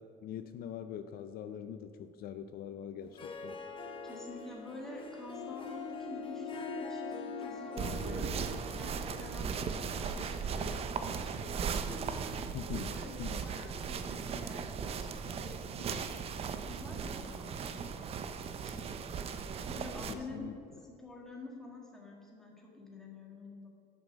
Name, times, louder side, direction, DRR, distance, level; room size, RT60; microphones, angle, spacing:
voice 1, 0.0-3.6 12.5-12.9 13.2-13.4 20.1-20.5, left 9 dB, 55° left, 9 dB, 0.4 m, -43 dB
Harp, 3.0-11.6, left 5 dB, 30° left, 0.9 m, -44 dB
voice 2, 4.0-12.4 12.7-15.0 15.2-16.1 16.6-18.3 18.6-18.8 19.7-20.6 20.8-23.7, left 2 dB, ahead, -2 dB, 1.7 m, -48 dB
sound 1, 7.8-20.1, right 6 dB, 35° right, 0.5 m, -37 dB
10.5 x 6.3 x 6.1 m, 2.8 s
cardioid pair, 170°, 18 cm